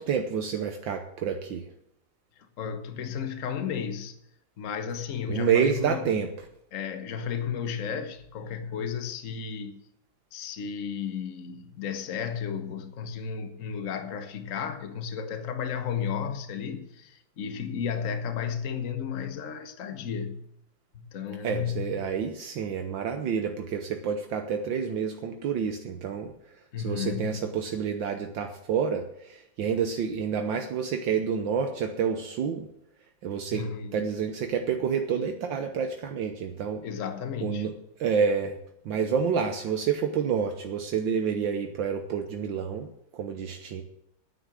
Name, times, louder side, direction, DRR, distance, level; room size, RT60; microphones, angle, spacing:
voice 1, 0.0-1.7 5.3-6.5 21.4-32.7 33.2-33.7 33.9-36.8 37.4-37.7 38.0-42.9 43.1-43.8, right 7 dB, 70° right, 1.7 m, -29 dB
voice 2, 2.6-4.2 4.6-6.0 6.7-9.8 10.3-20.4 20.9-21.9 26.7-27.4 33.5-34.0 36.8-37.7, left 7 dB, 45° left, 1.4 m, -33 dB
9.8 x 9.7 x 7.5 m
omnidirectional pair, 2.1 m